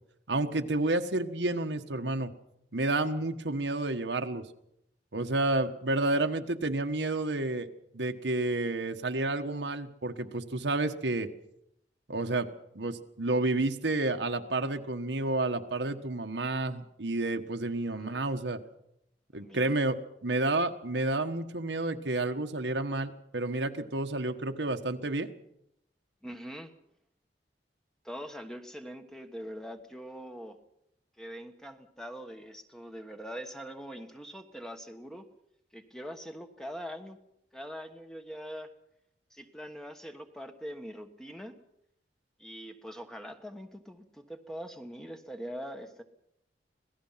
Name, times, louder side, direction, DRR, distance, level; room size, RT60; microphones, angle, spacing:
voice 1, 0.3-2.3 2.7-4.4 5.1-7.7 7.9-11.3 12.1-12.5 12.7-18.6 19.3-25.3, right 2 dB, 85° right, 6 dB, 1.5 m, -30 dB
voice 2, 17.9-18.2 19.4-19.8 26.2-26.7 28.0-30.6 31.2-35.3 35.7-37.2 37.5-38.7 39.3-41.6 42.4-46.0, equal, 5° left, 6 dB, 1.3 m, -43 dB
26.0 x 18.0 x 5.8 m, 0.78 s
head